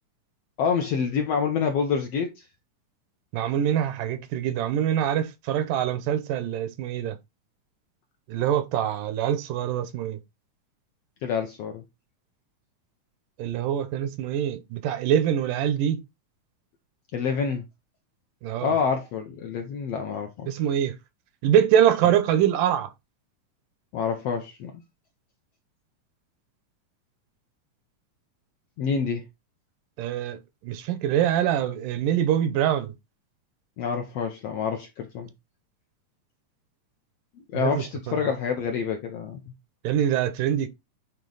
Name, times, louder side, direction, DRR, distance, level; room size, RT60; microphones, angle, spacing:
voice 1, 0.6-2.4 11.2-11.8 17.1-17.6 18.6-20.5 23.9-24.7 28.8-29.2 33.8-35.3 37.5-39.4, left 6 dB, 75° left, 1.5 m, -27 dB
voice 2, 3.3-7.2 8.3-10.2 13.4-16.0 18.4-18.7 20.5-21.0 21.4-22.9 30.0-32.9 37.5-38.2 39.8-40.7, right 10 dB, 90° right, 2.5 m, -24 dB
8.9 x 3.2 x 3.9 m
omnidirectional pair, 3.8 m